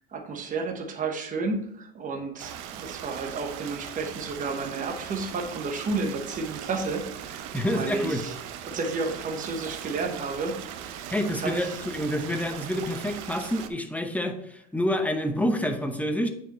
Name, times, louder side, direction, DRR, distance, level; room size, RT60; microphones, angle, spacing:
voice 1, 0.1-8.3 8.7-10.6 10.8-11.8, right 3 dB, 25° right, 3 dB, 1.1 m, -32 dB
Stream, 2.4-13.7, right 9 dB, 65° right, 0.7 m, -39 dB
voice 2, 7.5-8.2 11.1-16.3, equal, 5° left, 6 dB, 0.8 m, -28 dB
8.8 x 4.7 x 3.1 m, 0.74 s
supercardioid pair, 115°, 29 cm